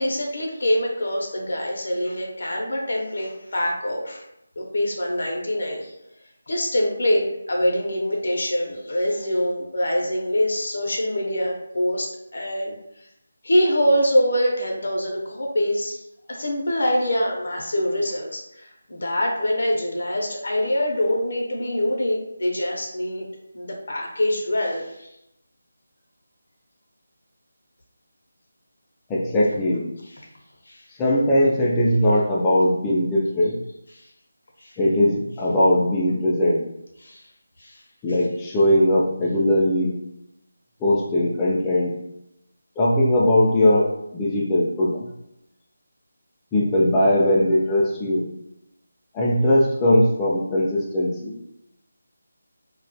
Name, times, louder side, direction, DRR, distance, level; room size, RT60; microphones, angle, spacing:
voice 1, 0.0-4.2 4.6-5.9 6.5-12.7 13.4-16.0 16.3-23.3 23.5-25.1 30.7-30.8 33.9-34.0 34.6-34.8 37.0-37.2 37.6-37.8 38.1-38.2, left 1 dB, 60° left, -1 dB, 0.5 m, -24 dB
voice 2, 29.1-29.9 31.0-33.6 34.8-36.6 38.0-39.9 40.8-41.9 42.8-45.0 46.5-48.3 49.1-51.3, left 1 dB, 10° left, -5 dB, 0.3 m, -20 dB
2.2 x 2.1 x 2.6 m, 0.83 s
figure-of-eight pair, 175°, 0 cm